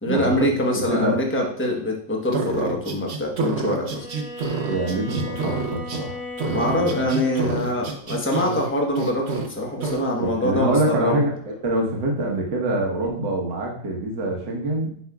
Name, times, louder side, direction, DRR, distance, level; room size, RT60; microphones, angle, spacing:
voice 1, 0.0-4.1 6.5-11.2, left 1 dB, 10° left, 0 dB, 0.8 m, -24 dB
voice 2, 0.7-1.2 4.7-7.1 7.4-7.8 10.2-14.9, right 1 dB, 75° right, 0 dB, 1.9 m, -25 dB
sound 1, 2.3-6.0 6.4-8.7 8.9-9.5 9.8-10.0, right 4 dB, 50° right, 0.8 m, -28 dB
Bowed string instrument, 3.9-7.6, left 2 dB, 85° left, 2.1 m, -36 dB
8.7 x 5.4 x 2.3 m, 0.63 s
omnidirectional pair, 1.9 m